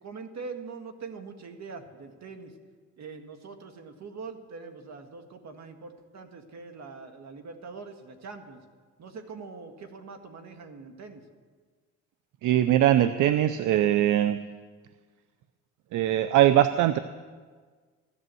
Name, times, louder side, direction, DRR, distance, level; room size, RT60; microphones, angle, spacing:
voice 1, 0.0-2.5 3.0-8.6 9.0-11.2, right 4 dB, 60° right, 7 dB, 1.8 m, -43 dB
voice 2, 12.4-14.4 15.9-17.0, right 12 dB, 80° right, 12 dB, 0.6 m, -21 dB
15.0 x 11.5 x 7.7 m, 1.5 s
cardioid pair, 90°, 30 cm